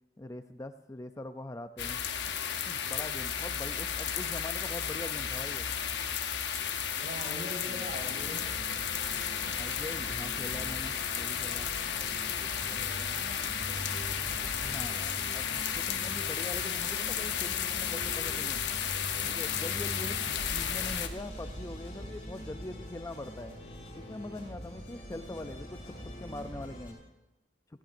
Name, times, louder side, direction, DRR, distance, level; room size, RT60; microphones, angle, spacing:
voice 1, 0.2-2.0 2.7-5.7 7.7-7.9 9.6-11.7 14.6-18.7 19.2-23.5 23.9-27.0, left 1 dB, 20° left, 9 dB, 0.4 m, -43 dB
sound 1, 1.8-21.1, left 8 dB, 80° left, 0.9 m, -33 dB
voice 2, 7.0-8.4 12.7-13.5, equal, 60° right, 0 dB, 4.9 m, -42 dB
sound 2, 7.9-26.9, equal, 45° left, 5.9 m, -43 dB
20.0 x 16.0 x 2.6 m, 1.0 s
head